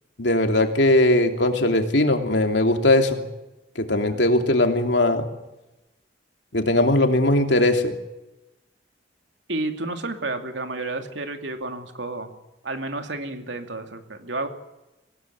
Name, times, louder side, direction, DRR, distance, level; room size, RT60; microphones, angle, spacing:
voice 1, 0.2-3.2 3.8-5.3 6.5-7.9, left 1 dB, 70° left, 5 dB, 2.9 m, -19 dB
voice 2, 9.5-12.3 12.6-14.5, right 2 dB, 75° right, 6 dB, 2.6 m, -31 dB
25.0 x 17.5 x 9.3 m, 0.98 s
head